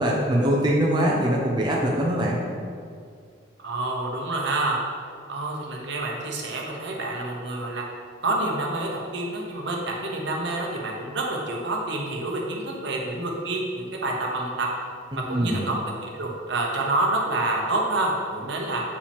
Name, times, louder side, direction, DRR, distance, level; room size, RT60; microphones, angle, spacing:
voice 1, 0.0-2.4 15.3-15.6, equal, 25° right, -3 dB, 0.7 m, -22 dB
voice 2, 3.6-4.8 5.3-7.8 8.2-14.7 15.3-18.8, right 2 dB, 60° right, -1 dB, 1.1 m, -28 dB
8.3 x 5.1 x 3.5 m, 2.2 s
head